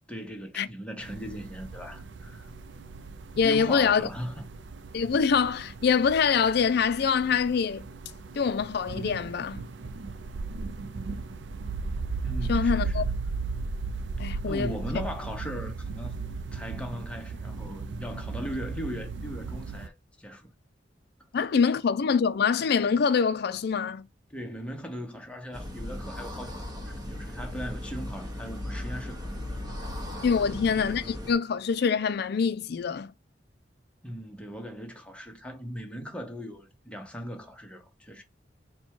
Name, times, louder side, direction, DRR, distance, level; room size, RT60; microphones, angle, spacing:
voice 1, 0.1-2.5 3.4-4.5 12.2-13.1 14.5-20.5 24.3-29.6 30.3-30.7 34.0-38.2, equal, 5° left, 0.9 m, -39 dB
sound 1, 1.0-19.9, right 4 dB, 80° right, 0.5 m, -36 dB
voice 2, 3.4-4.0 4.9-7.8 8.4-9.6 12.5-13.0 14.2-14.7 21.3-24.1 30.2-33.1, left 6 dB, 60° left, 0.4 m, -25 dB
sound 2, 25.5-31.3, left 1 dB, 25° right, 1.0 m, -37 dB
4.3 x 2.2 x 4.5 m
head